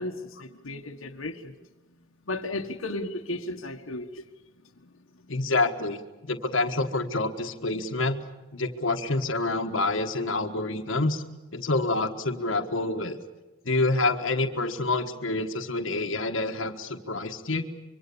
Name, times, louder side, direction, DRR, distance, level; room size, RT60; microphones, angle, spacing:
voice 1, 0.0-1.5 2.3-4.3 4.8-5.3, left 2 dB, 85° left, 3 dB, 1.5 m, -35 dB
voice 2, 5.3-8.2 8.5-11.2 11.5-13.2 13.6-17.7, left 2 dB, 70° left, 4 dB, 1.5 m, -27 dB
25.0 x 23.5 x 7.0 m, 1.2 s
head